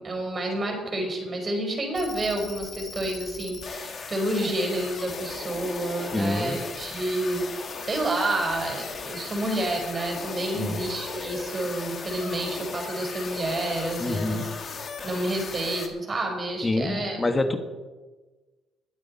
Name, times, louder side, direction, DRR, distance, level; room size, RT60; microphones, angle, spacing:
voice 1, 0.0-14.5 15.0-17.2, right 1 dB, 35° right, 2 dB, 4.7 m, -29 dB
sound 1, 1.9-15.9, left 5 dB, 45° left, 1.9 m, -37 dB
voice 2, 6.1-6.6 10.5-10.8 14.0-14.4 16.6-17.6, left 2 dB, 20° left, 7 dB, 1.6 m, -26 dB
20.5 x 8.6 x 4.3 m, 1.3 s
cardioid pair, 85°, 0 cm